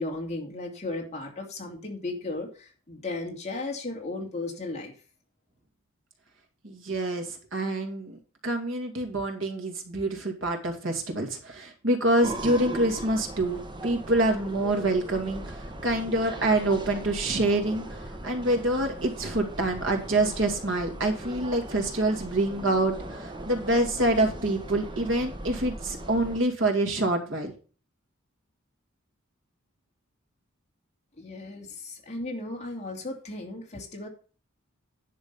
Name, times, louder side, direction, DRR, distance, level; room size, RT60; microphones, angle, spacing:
voice 1, 0.0-4.9 31.2-34.1, left 2 dB, 30° left, 0 dB, 2.6 m, -35 dB
voice 2, 6.6-27.5, right 2 dB, 65° right, 3 dB, 2.5 m, -26 dB
sound 1, 12.2-26.4, right 1 dB, 20° right, 1.3 m, -39 dB
10.5 x 6.3 x 5.5 m, 0.37 s
head